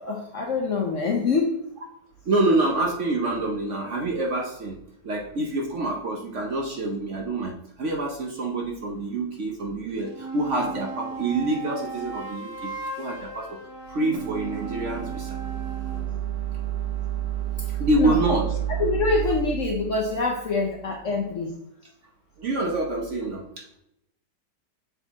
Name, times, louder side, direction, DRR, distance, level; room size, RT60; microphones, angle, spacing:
voice 1, 0.0-1.6 18.0-18.2 18.8-21.5, left 4 dB, 55° left, 1 dB, 0.9 m, -25 dB
voice 2, 2.3-4.8 5.0-12.7 13.0-13.6 13.9-15.4 17.8-18.5 22.4-23.8, right 2 dB, 55° right, 0 dB, 0.9 m, -26 dB
sound 1, 9.9-16.1, right 4 dB, 25° right, 0.8 m, -37 dB
sound 2, 14.1-21.2, right 11 dB, 80° right, 1.4 m, -31 dB
6.9 x 4.1 x 3.5 m, 0.78 s
omnidirectional pair, 1.9 m